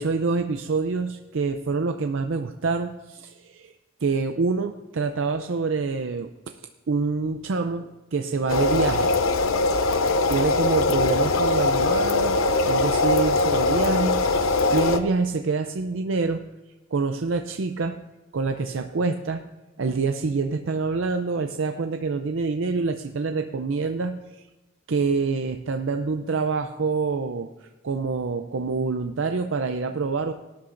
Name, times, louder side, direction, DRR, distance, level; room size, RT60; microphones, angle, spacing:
voice 1, 0.0-3.7 4.0-6.6 6.9-9.1 10.3-12.4 12.7-16.4 16.9-18.0 18.3-19.4 19.8-24.4 24.9-27.5 27.8-30.3, right 4 dB, 70° right, 6 dB, 0.5 m, -26 dB
sound 1, 8.5-15.0, left 3 dB, 85° left, 0.7 m, -21 dB
18.0 x 11.5 x 2.6 m, 1.0 s
head